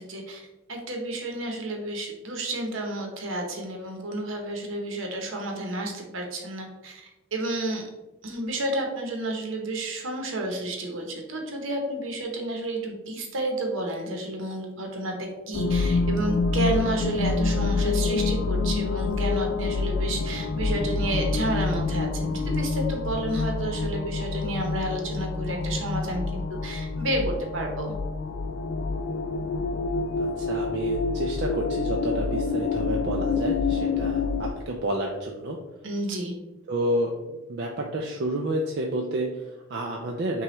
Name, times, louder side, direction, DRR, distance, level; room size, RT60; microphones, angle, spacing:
voice 1, 0.0-7.9 8.2-27.9 35.8-36.3, right 1 dB, 75° right, 1 dB, 0.9 m, -31 dB
sound 1, 15.5-34.5, left 4 dB, 65° left, 0.3 m, -27 dB
voice 2, 30.2-35.6 36.7-40.4, right 1 dB, 55° right, 0 dB, 0.4 m, -30 dB
5.7 x 2.3 x 3.1 m, 1.1 s
head